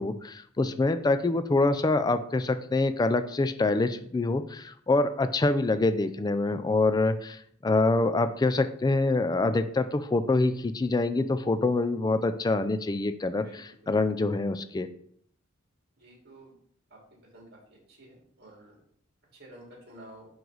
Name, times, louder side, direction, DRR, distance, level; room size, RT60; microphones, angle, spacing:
voice 1, 0.0-14.9, left 2 dB, 20° left, 10 dB, 0.3 m, -25 dB
voice 2, 13.4-13.8 16.0-16.5 17.3-17.4 18.0-18.8 19.4-20.3, right 1 dB, 50° right, -2 dB, 2.5 m, -50 dB
9.3 x 3.2 x 3.9 m, 0.64 s
head